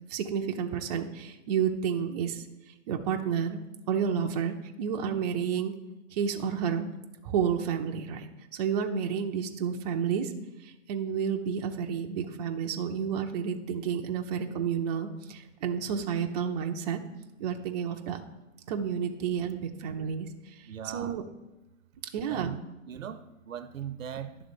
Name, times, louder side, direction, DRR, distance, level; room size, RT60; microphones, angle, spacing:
voice 1, 0.1-2.4 2.9-3.6 3.9-5.7 6.1-6.9 7.2-8.3 8.5-10.3 10.6-17.0 17.4-18.2 18.7-20.7 20.9-21.2 22.1-22.5, right 7 dB, 30° right, 3 dB, 0.7 m, -30 dB
voice 2, 20.7-21.2 22.3-22.6 22.9-24.4, right 9 dB, 80° right, 11 dB, 0.9 m, -39 dB
11.0 x 3.6 x 7.0 m, 0.99 s
hypercardioid pair, 145°, 39 cm